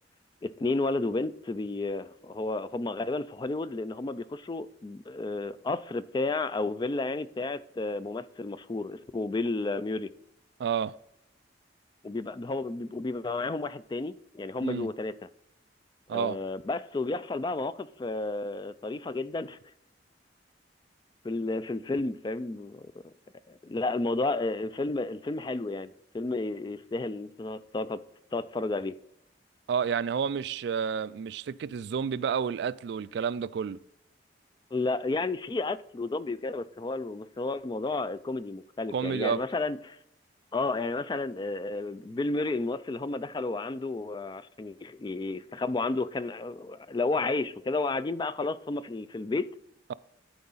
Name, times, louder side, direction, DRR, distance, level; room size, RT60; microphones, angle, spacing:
voice 1, 0.4-10.1 12.0-15.3 16.1-19.6 21.2-23.1 23.5-28.0 28.3-29.0 34.7-40.0 40.5-49.5, left 3 dB, 25° left, 0.3 m, -32 dB
voice 2, 10.6-10.9 14.6-14.9 16.1-16.4 29.7-33.8 38.9-39.4, right 7 dB, 65° right, 0.3 m, -30 dB
12.0 x 4.7 x 4.0 m
head